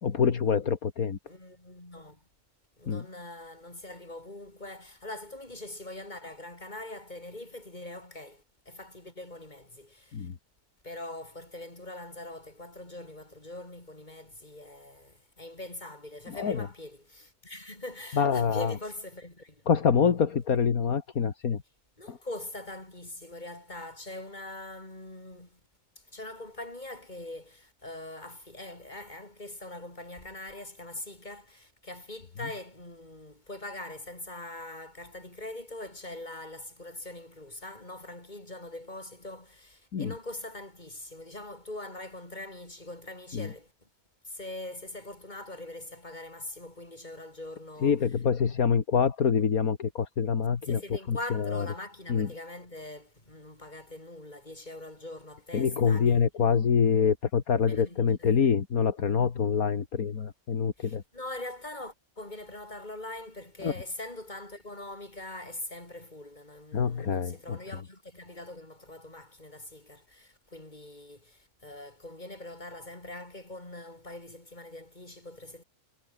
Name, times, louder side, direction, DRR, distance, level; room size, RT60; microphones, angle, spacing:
voice 1, 0.0-1.2 2.9-3.0 10.1-10.3 16.3-16.7 18.1-18.7 19.7-21.6 22.1-22.2 39.9-40.1 43.3-43.5 47.8-50.8 51.1-51.7 52.1-52.3 55.5-61.0 63.6-63.7 66.7-67.6, left 6 dB, 75° left, 2.1 m, -26 dB
voice 2, 1.3-2.2 2.8-10.3 10.8-19.6 22.0-25.6 26.1-43.7 44.3-48.0 50.6-56.2 57.6-58.3 60.8-75.6, left 1 dB, 30° left, 5.4 m, -43 dB
omnidirectional pair, 1.5 m